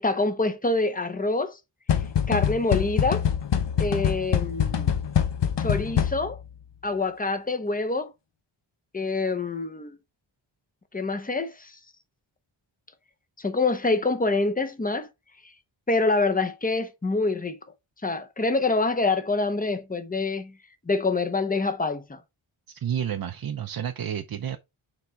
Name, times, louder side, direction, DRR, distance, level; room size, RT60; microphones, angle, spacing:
voice 1, 0.0-1.6 2.3-3.3 3.8-4.9 5.6-6.4 6.8-8.1 8.9-10.0 10.9-11.7 13.4-15.1 15.9-17.6 18.0-20.5 20.9-22.2, left 3 dB, 15° left, 0.9 m, -26 dB
sound 1, 1.9-6.5, left 8 dB, 60° left, 1.0 m, -25 dB
voice 2, 22.7-24.6, right 9 dB, 45° right, 0.6 m, -30 dB
6.9 x 3.7 x 4.5 m
wide cardioid pair, 155°, 48 cm